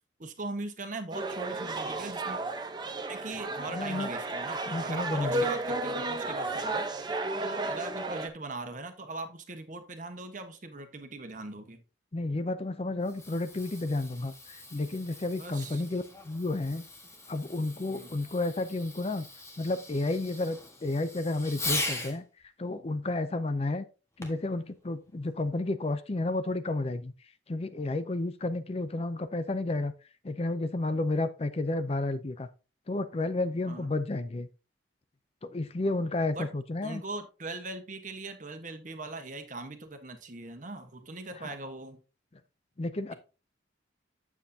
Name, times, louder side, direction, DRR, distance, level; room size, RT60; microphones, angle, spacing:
voice 1, 0.2-2.4 3.1-6.8 7.4-11.8 15.4-15.8 17.9-18.1 33.7-33.9 36.3-36.5 36.8-42.0, right 2 dB, 45° right, 1.3 m, -40 dB
sound 1, 1.1-8.3, right 2 dB, 25° right, 0.8 m, -33 dB
voice 2, 3.7-4.1 4.7-5.4 12.1-16.8 17.3-19.3 19.6-22.2 22.6-23.8 24.2-27.1 27.5-29.9 30.2-32.5 32.9-34.5 35.4-37.0 41.4-41.5 42.8-43.1, left 2 dB, 35° left, 0.5 m, -31 dB
Fireworks, 12.9-22.2 24.2-24.5 25.2-25.3, left 2 dB, 15° left, 1.4 m, -40 dB
9.2 x 7.3 x 2.8 m
head